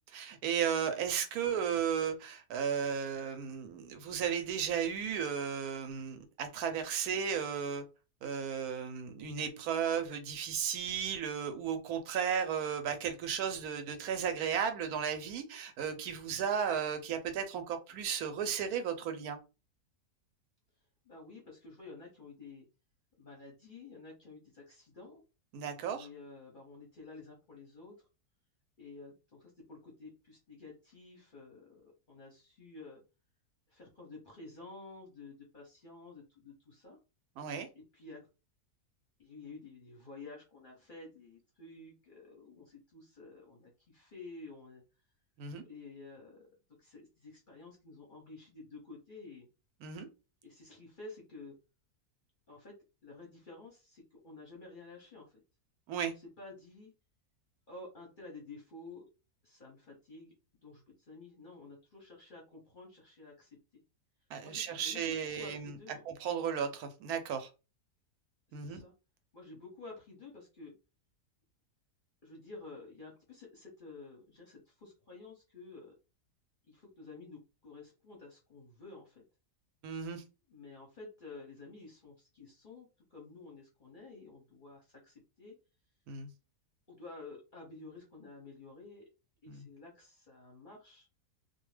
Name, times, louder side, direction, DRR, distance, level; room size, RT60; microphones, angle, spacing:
voice 1, 0.1-7.8 8.2-19.4 25.5-26.1 37.4-37.7 45.4-45.6 49.8-50.1 55.9-56.1 64.3-65.7 66.0-67.5 68.5-68.8 79.8-80.2 86.1-86.3 89.5-89.6, right 7 dB, 75° right, 1.0 m, -34 dB
voice 2, 21.0-22.6 23.2-25.2 25.9-28.0 28.8-33.0 33.7-37.0 37.7-38.2 39.2-44.8 45.6-46.5 46.8-49.5 50.4-51.6 52.5-52.8 53.0-55.4 56.4-56.9 57.7-59.0 59.4-60.3 60.6-63.6 64.4-66.0 68.5-68.9 69.3-70.8 72.2-75.9 76.7-79.2 80.5-85.5 86.9-89.0 89.4-91.1, left 3 dB, 45° left, 0.7 m, -51 dB
2.5 x 2.2 x 3.1 m
omnidirectional pair, 1.6 m